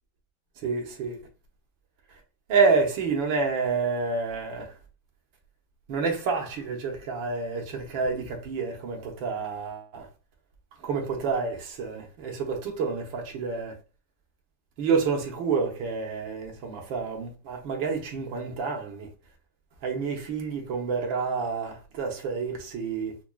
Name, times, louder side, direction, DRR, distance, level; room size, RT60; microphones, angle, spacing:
voice 1, 0.6-1.2 2.5-4.7 5.9-10.1 10.8-13.8 14.8-19.1 19.8-23.2, right 4 dB, 80° right, 1.7 m, -28 dB
5.8 x 2.3 x 2.3 m
omnidirectional pair, 2.0 m